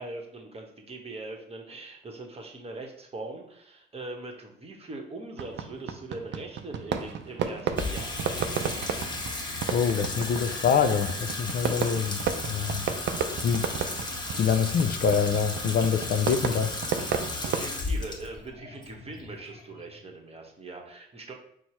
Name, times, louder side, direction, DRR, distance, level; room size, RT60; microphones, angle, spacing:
voice 1, 0.0-8.2 17.4-21.3, right 2 dB, 30° right, 2 dB, 0.9 m, -41 dB
Fireworks, 5.4-17.7, right 7 dB, 65° right, 0.5 m, -33 dB
Water tap faucet / Sink (filling or washing), 7.7-20.1, left 2 dB, 20° left, 0.8 m, -35 dB
voice 2, 9.7-12.9 13.4-13.7 14.4-16.8, left 6 dB, 50° left, 8 dB, 0.4 m, -25 dB
4.4 x 2.0 x 4.3 m, 0.70 s
cardioid pair, 90°, 20 cm